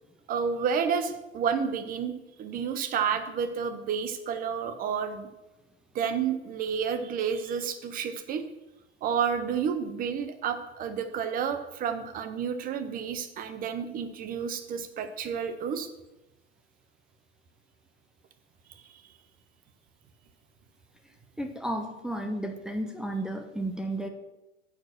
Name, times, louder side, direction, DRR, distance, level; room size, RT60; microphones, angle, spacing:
voice 1, 0.3-5.3 5.9-8.4 9.0-15.9, right 7 dB, 25° right, 9 dB, 0.8 m, -30 dB
voice 2, 21.4-24.1, right 1 dB, ahead, 4 dB, 0.4 m, -33 dB
8.9 x 4.9 x 6.3 m, 0.99 s
hypercardioid pair, 125°, 38 cm